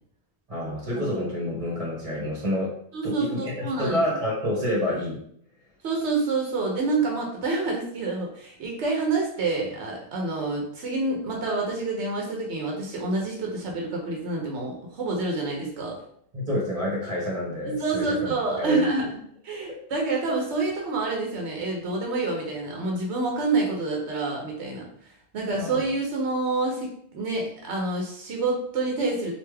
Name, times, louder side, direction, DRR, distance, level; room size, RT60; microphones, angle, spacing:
voice 1, 0.5-2.7 3.0-5.2 16.3-19.0 25.5-25.8, left 1 dB, 30° right, -5 dB, 1.5 m, -28 dB
voice 2, 2.9-4.0 5.8-16.0 17.7-19.2 19.4-29.3, right 3 dB, 85° right, 0 dB, 1.0 m, -27 dB
3.3 x 2.6 x 3.3 m, 0.66 s
omnidirectional pair, 1.1 m